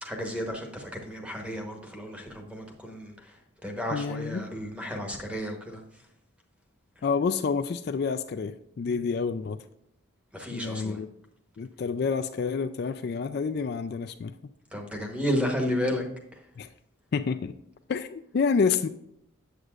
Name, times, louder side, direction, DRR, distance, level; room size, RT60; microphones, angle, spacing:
voice 1, 0.0-5.8 10.3-11.0 14.7-16.1 16.3-16.4, equal, 5° right, 2 dB, 1.0 m, -32 dB
voice 2, 3.9-4.4 7.0-9.6 10.5-11.1 11.6-14.5 16.6-16.7 17.1-17.6 17.9-18.9, left 5 dB, 50° left, 9 dB, 0.3 m, -28 dB
8.0 x 7.8 x 2.4 m, 0.77 s
head